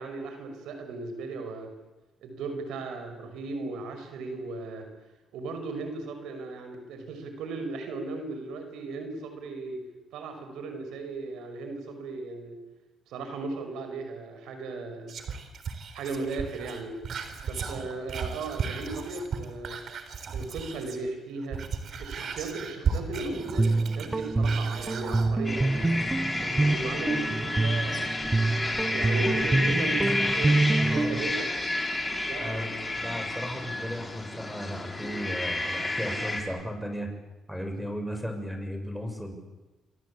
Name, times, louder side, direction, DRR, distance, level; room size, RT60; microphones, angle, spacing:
voice 1, 0.0-1.7 2.2-4.9 5.3-9.8 10.1-12.6 13.1-15.1 15.9-16.9 17.4-19.8 20.3-21.6 22.0-25.9 26.4-28.2 28.7-31.5 32.2-33.0, right 3 dB, 85° right, 6 dB, 5.9 m, -36 dB
Whispering, 15.1-21.1 21.4-25.3 25.8-25.9, right 6 dB, 60° right, 3.8 m, -35 dB
Guitar, 23.3-31.3, right 2 dB, 20° right, 0.9 m, -26 dB
sound 1, 25.4-36.4, left 2 dB, 20° left, 5.3 m, -31 dB
voice 2, 30.8-31.2 32.4-37.1 37.5-39.4, equal, ahead, 5 dB, 7.3 m, -35 dB
28.5 x 23.5 x 8.8 m, 1.1 s
cardioid pair, 90°, 0 cm